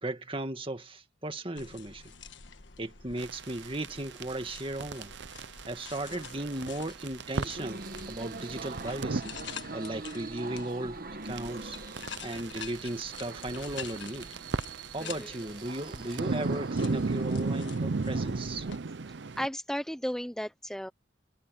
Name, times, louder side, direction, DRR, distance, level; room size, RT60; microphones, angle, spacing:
voice 1, 0.0-2.1 2.8-5.1 5.7-7.8 8.1-9.3 9.7-11.8 12.2-14.3 14.9-18.7, right 1 dB, 30° right, 2.0 m, -36 dB
sound 1, 1.6-18.8, left 6 dB, 75° left, 1.5 m, -48 dB
sound 2, 3.2-9.2 11.3-19.5, right 3 dB, 65° right, 0.6 m, -36 dB
sound 3, 7.4-17.2, right 3 dB, 50° right, 1.3 m, -44 dB
voice 2, 15.0-15.3 19.4-20.9, equal, 5° left, 0.8 m, -34 dB
head